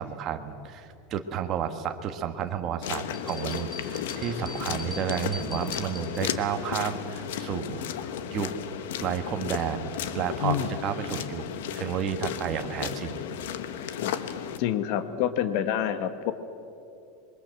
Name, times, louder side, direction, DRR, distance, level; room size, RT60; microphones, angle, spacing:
voice 1, 0.0-8.5 9.0-11.4 11.7-13.2, right 9 dB, 30° right, 6 dB, 1.4 m, -31 dB
sound 1, 2.8-14.6, left 9 dB, 75° left, 1.3 m, -34 dB
sound 2, 3.1-6.5, left 2 dB, ahead, 1.1 m, -42 dB
voice 2, 13.9-14.2 14.6-16.3, left 10 dB, 45° left, 11 dB, 1.1 m, -28 dB
26.5 x 23.0 x 7.7 m, 2.8 s
supercardioid pair, 175°, 0 cm